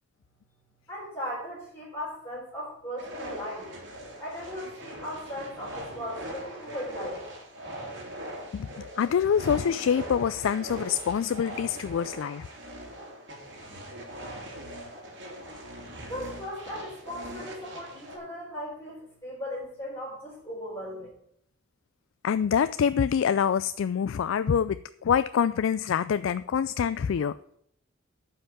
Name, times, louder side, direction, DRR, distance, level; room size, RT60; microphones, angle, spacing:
voice 1, 0.9-3.7 4.2-7.2 16.0-21.1, equal, 15° left, -9 dB, 4.4 m, -37 dB
sound 1, 3.0-18.2, right 1 dB, 60° right, 3.2 m, -41 dB
voice 2, 8.5-12.5 22.2-27.3, left 7 dB, 75° left, 14 dB, 0.3 m, -26 dB
9.8 x 5.8 x 8.3 m, 0.71 s
head